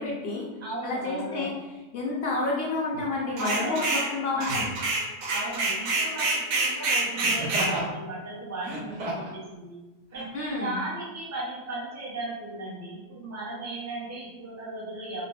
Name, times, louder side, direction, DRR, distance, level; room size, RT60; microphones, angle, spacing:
voice 1, 0.0-0.5 0.8-1.5 1.9-4.7 10.3-10.7, left 3 dB, 70° left, -3 dB, 0.5 m, -29 dB
voice 2, 0.6-1.5 3.4-4.6 5.3-9.8 10.1-15.2, right 2 dB, 15° right, -6 dB, 0.6 m, -36 dB
Laughter, 2.9-3.1 4.4-4.8 7.1-7.9 8.5-9.4 10.1-10.3, right 1 dB, 80° right, 1.4 m, -33 dB
sound 1, 3.4-4.1 4.4-7.7, right 2 dB, 60° right, 0.8 m, -27 dB
3.0 x 2.9 x 3.2 m, 1.1 s
omnidirectional pair, 1.6 m